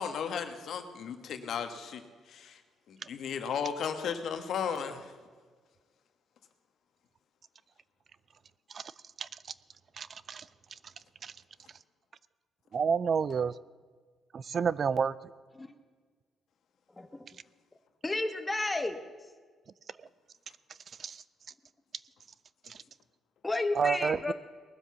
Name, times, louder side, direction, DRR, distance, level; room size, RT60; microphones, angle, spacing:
voice 1, 0.0-2.0 2.3-2.6 2.9-5.1, left 7 dB, 70° left, 7 dB, 1.3 m, -35 dB
voice 2, 10.0-10.4 11.2-11.3 12.7-13.5 14.3-15.1 21.0-21.2 22.7-22.8 23.7-24.3, right 6 dB, 50° right, 18 dB, 0.4 m, -29 dB
voice 3, 17.0-17.3 18.0-19.0 23.4-24.3, left 2 dB, 15° left, 7 dB, 1.3 m, -32 dB
19.5 x 7.6 x 6.8 m, 1.5 s
cardioid pair, 90°, 0 cm